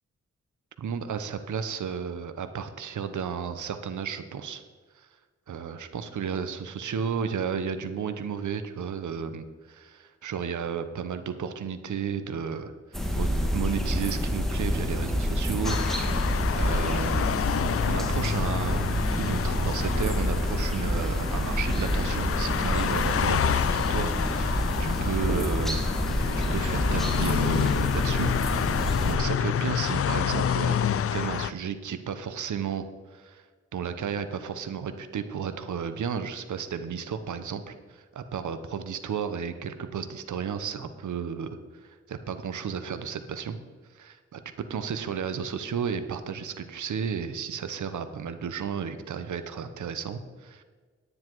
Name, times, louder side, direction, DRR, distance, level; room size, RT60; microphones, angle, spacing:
voice 1, 0.8-4.6 5.0-5.1 5.5-12.7 13.1-17.3 17.9-25.8 26.4-28.4 28.6-32.8 33.1-33.4 33.7-43.6 43.9-44.4 44.7-50.6, right 7 dB, 85° right, 10 dB, 0.9 m, -33 dB
sound 1, 12.9-29.2, equal, ahead, 2.2 m, -28 dB
sound 2, 15.6-31.5, left 9 dB, 50° left, 0.4 m, -28 dB
9.9 x 9.7 x 4.7 m, 1.5 s
cardioid pair, 60°, 29 cm